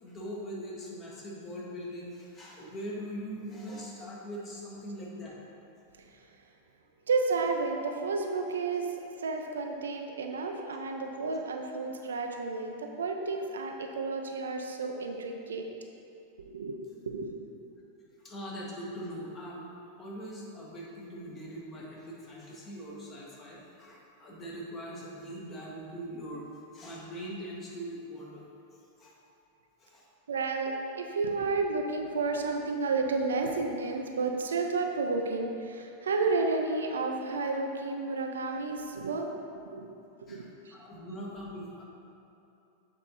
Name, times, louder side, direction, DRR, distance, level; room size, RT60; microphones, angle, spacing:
voice 1, 0.0-5.4 18.2-19.7 20.0-26.4 26.7-28.4 29.0-29.2 29.8-30.1 40.3-41.8, equal, 25° left, -4 dB, 1.2 m, -41 dB
voice 2, 7.1-8.9 9.2-15.7 16.4-16.8 17.1-17.5 30.3-39.3 39.6-39.9 40.2-40.7, right 3 dB, 65° right, 3 dB, 0.4 m, -31 dB
7.2 x 3.5 x 4.1 m, 2.7 s
figure-of-eight pair, 90°, 0 cm